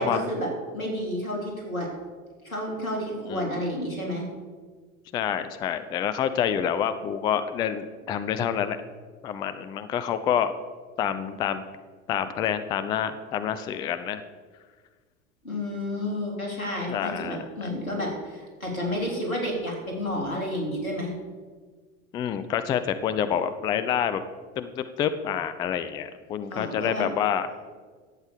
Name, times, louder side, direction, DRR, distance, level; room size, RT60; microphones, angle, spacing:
voice 1, 0.0-1.9 2.4-4.3 15.4-21.1 26.5-27.1, left 1 dB, 80° left, 0 dB, 3.7 m, -30 dB
voice 2, 5.1-8.8 9.2-10.5 11.0-11.6 12.1-14.2 16.9-17.5 22.1-24.2 24.6-27.5, left 9 dB, 10° left, 11 dB, 0.3 m, -27 dB
11.5 x 8.1 x 6.9 m, 1.5 s
figure-of-eight pair, 80°, 41 cm